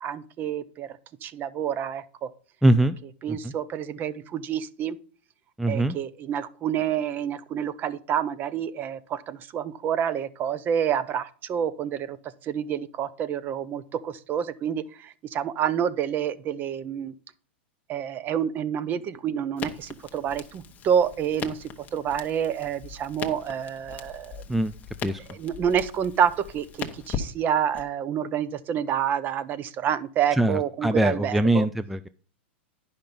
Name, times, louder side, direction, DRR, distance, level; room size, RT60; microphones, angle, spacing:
voice 1, 0.0-2.3 3.2-5.0 5.7-12.2 12.4-17.1 17.9-24.4 25.2-31.7, right 9 dB, 30° right, 15 dB, 0.7 m, -28 dB
voice 2, 2.6-3.0 3.3-3.5 5.6-6.0 24.5-24.7 25.0-25.2 30.4-32.1, right 1 dB, ahead, 12 dB, 0.3 m, -22 dB
Crackle, 19.6-27.9, left 7 dB, 25° left, 1.0 m, -39 dB
10.5 x 5.7 x 5.3 m, 0.40 s
supercardioid pair, 135°, 6 cm